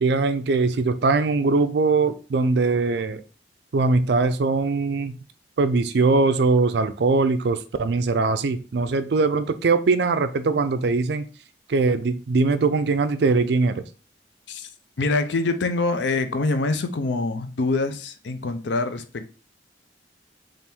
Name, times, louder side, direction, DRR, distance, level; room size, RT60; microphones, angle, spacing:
voice 1, 0.0-3.2 3.7-5.1 5.6-11.2 11.7-13.8, right 3 dB, 65° right, 11 dB, 0.4 m, -21 dB
voice 2, 15.0-19.3, left 3 dB, 80° left, 9 dB, 0.5 m, -25 dB
3.4 x 2.5 x 4.3 m, 0.36 s
head